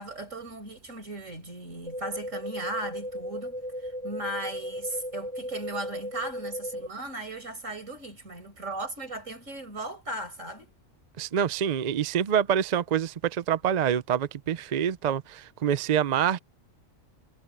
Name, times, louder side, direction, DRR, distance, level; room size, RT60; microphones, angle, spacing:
voice 1, 0.0-10.7, right 2 dB, 75° right, 6.2 m, -37 dB
sound 1, 1.9-6.9, equal, 25° right, 3.0 m, -36 dB
voice 2, 11.2-16.4, right 9 dB, 50° right, 0.5 m, -26 dB
omnidirectional pair, 1.3 m